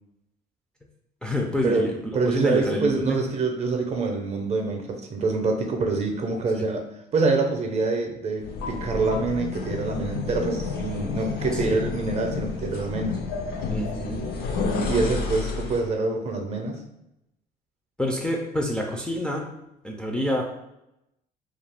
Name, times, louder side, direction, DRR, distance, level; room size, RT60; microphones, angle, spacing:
voice 1, 1.2-1.9 2.3-3.2 6.5-6.6 11.5-11.8 13.7-14.3 18.0-19.5 19.8-20.4, left 1 dB, 5° left, -1 dB, 0.3 m, -27 dB
voice 2, 2.1-13.2 14.9-16.8, right 3 dB, 40° right, 3 dB, 0.6 m, -26 dB
sound 1, 8.4-15.9, left 4 dB, 65° left, 0.5 m, -30 dB
2.4 x 2.2 x 3.4 m, 0.84 s
cardioid pair, 110°, 17 cm